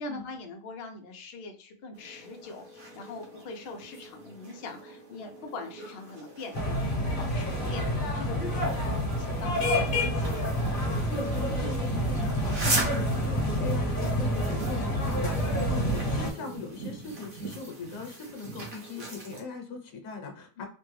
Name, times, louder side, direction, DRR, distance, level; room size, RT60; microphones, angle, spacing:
voice 1, 0.0-8.4 9.1-10.4 12.6-12.8 15.5-15.9 20.6-20.7, left 3 dB, 85° left, 4 dB, 0.5 m, -42 dB
sound 1, 1.9-19.4, right 2 dB, 40° right, 0.9 m, -39 dB
sound 2, 6.5-16.3, equal, 40° left, 0.8 m, -28 dB
voice 2, 11.0-20.7, left 4 dB, 60° left, 3 dB, 1.1 m, -40 dB
3.1 x 2.2 x 3.1 m, 0.42 s
omnidirectional pair, 1.7 m